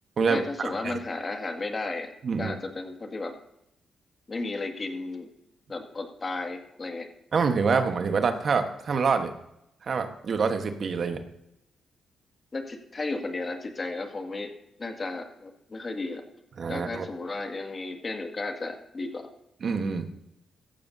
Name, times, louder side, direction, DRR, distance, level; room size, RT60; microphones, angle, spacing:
voice 1, 0.3-2.1 2.4-3.4 4.3-5.3 5.7-7.1 7.7-7.8 12.5-14.5 14.8-16.2 16.7-19.3, left 3 dB, 40° left, 4 dB, 2.1 m, -34 dB
voice 2, 2.2-2.5 7.3-9.3 9.8-11.2 16.6-17.0 19.6-20.1, right 5 dB, 60° right, 7 dB, 1.3 m, -26 dB
15.5 x 14.5 x 2.8 m, 0.81 s
cardioid pair, 65°, 0 cm